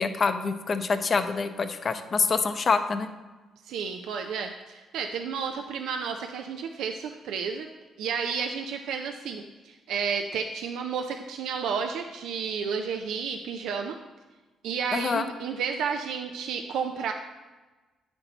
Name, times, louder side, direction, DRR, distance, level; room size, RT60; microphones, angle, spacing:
voice 1, 0.0-3.1 14.9-15.3, left 4 dB, 40° left, 9 dB, 0.5 m, -26 dB
voice 2, 3.6-7.7 8.0-14.0 14.6-17.1, right 6 dB, 85° right, 4 dB, 0.4 m, -31 dB
8.8 x 4.4 x 3.9 m, 1.2 s
cardioid pair, 90°, 0 cm